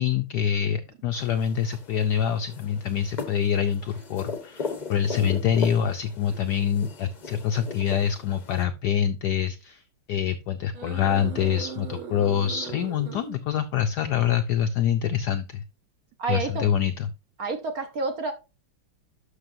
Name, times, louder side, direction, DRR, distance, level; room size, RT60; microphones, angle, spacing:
voice 1, 0.0-9.8 10.1-15.6 16.3-17.1, left 9 dB, 85° left, 0.9 m, -25 dB
sound 1, 1.1-8.6, left 4 dB, 40° left, 0.6 m, -38 dB
sound 2, 3.9-4.1 4.8-4.9 6.3-6.5 7.6-7.8 8.5-8.6 10.7-13.4, right 6 dB, 75° right, 2.3 m, -39 dB
voice 2, 16.2-16.7 17.4-18.3, right 3 dB, 60° right, 1.0 m, -29 dB
11.5 x 6.1 x 2.6 m
omnidirectional pair, 2.3 m